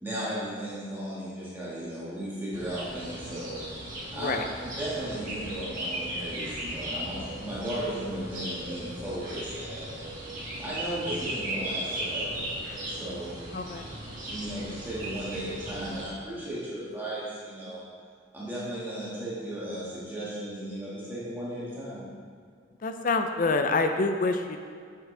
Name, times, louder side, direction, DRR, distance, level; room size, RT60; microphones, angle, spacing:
voice 1, 0.0-3.6 4.1-4.3 4.8-9.9 10.6-12.5 12.8-13.4 14.3-17.8 18.3-22.0, right 1 dB, 10° right, -9 dB, 1.8 m, -35 dB
sound 1, 2.5-16.0, right 1 dB, 45° right, 1.9 m, -37 dB
voice 2, 4.1-4.4 13.5-13.8 22.8-24.6, left 3 dB, 45° left, 6 dB, 0.5 m, -26 dB
7.6 x 7.4 x 3.4 m, 2.1 s
head